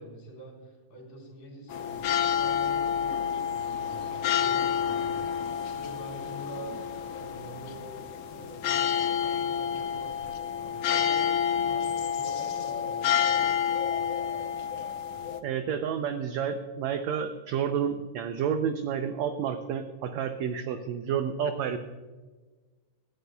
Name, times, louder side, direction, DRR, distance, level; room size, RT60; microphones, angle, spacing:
voice 1, 0.0-6.8 7.2-8.1 8.3-14.1, right 1 dB, 35° left, -1 dB, 4.0 m, -46 dB
sound 1, 1.7-15.4, left 8 dB, 90° left, 1.3 m, -29 dB
voice 2, 15.4-21.8, right 8 dB, 80° right, 7 dB, 1.6 m, -30 dB
18.0 x 13.0 x 2.3 m, 1.3 s
omnidirectional pair, 3.8 m